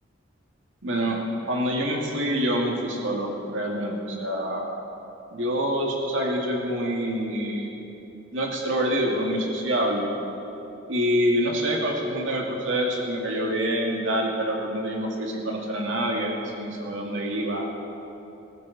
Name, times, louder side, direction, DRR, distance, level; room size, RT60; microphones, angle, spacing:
voice 1, 0.8-1.2 1.5-4.8 5.3-7.7 8.3-10.1 10.9-17.7, equal, 75° right, -1 dB, 2.3 m, -26 dB
16.5 x 14.5 x 4.2 m, 2.9 s
head